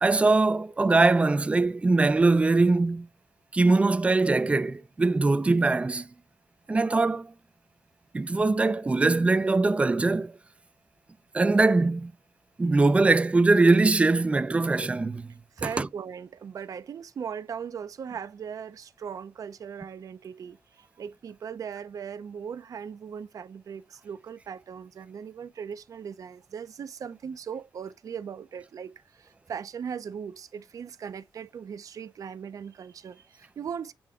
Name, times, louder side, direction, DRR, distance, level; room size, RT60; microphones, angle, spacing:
voice 1, 0.0-3.1 3.5-6.0 6.7-7.3 8.1-10.3 11.3-12.1 12.6-15.3 15.6-15.9, right 3 dB, 15° right, 0.5 m, -22 dB
voice 2, 15.6-33.9, right 7 dB, 55° right, 0.7 m, -39 dB
8.5 x 3.1 x 3.6 m
wide cardioid pair, 140°, 7 cm